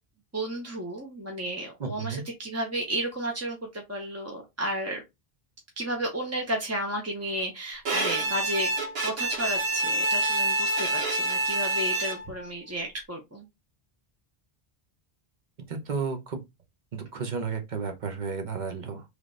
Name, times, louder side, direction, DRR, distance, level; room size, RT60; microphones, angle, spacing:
voice 1, 0.3-5.0 5.8-8.7 9.0-13.4, right 1 dB, 15° right, 0.7 m, -33 dB
voice 2, 1.8-2.2 15.7-16.4 16.9-19.0, right 5 dB, 50° right, 1.0 m, -32 dB
Bowed string instrument, 7.8-12.4, right 2 dB, 75° right, 1.2 m, -27 dB
3.4 x 3.2 x 3.8 m
omnidirectional pair, 1.0 m